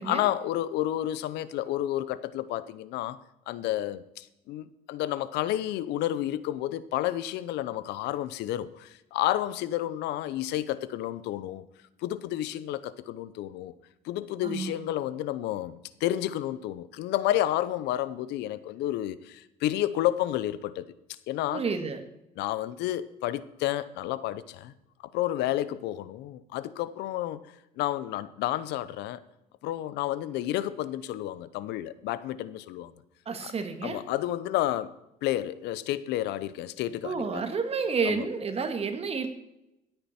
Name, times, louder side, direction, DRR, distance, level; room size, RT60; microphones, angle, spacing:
voice 1, 0.0-3.2 3.5-11.6 12.0-13.7 14.0-20.9 21.3-21.6 22.4-24.7 25.1-27.4 27.8-29.2 29.6-32.9 33.4-33.5 33.8-34.9 35.2-37.4 38.0-38.2, left 13 dB, 85° left, 16 dB, 0.7 m, -30 dB
voice 2, 14.4-14.9 21.5-22.0 33.3-34.0 37.0-39.3, right 5 dB, 35° right, 7 dB, 1.8 m, -30 dB
16.0 x 8.9 x 4.4 m, 0.89 s
cardioid pair, 110°, 17 cm